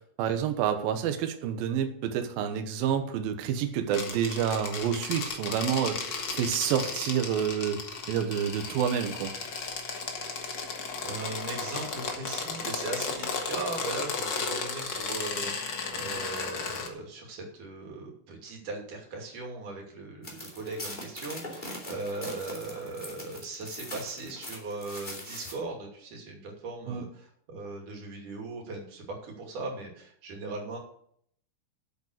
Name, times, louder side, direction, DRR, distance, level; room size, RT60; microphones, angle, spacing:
voice 1, 0.2-6.0 6.3-7.8 8.1-9.3 26.9-27.0, right 8 dB, 75° right, 7 dB, 2.7 m, -28 dB
sound 1, 3.9-16.9, left 4 dB, 70° left, 1.0 m, -35 dB
voice 2, 11.0-30.8, right 3 dB, 55° right, 0 dB, 4.1 m, -38 dB
sound 2, 20.2-25.5, left 1 dB, 15° left, 2.0 m, -42 dB
9.4 x 8.1 x 6.6 m, 0.65 s
omnidirectional pair, 4.5 m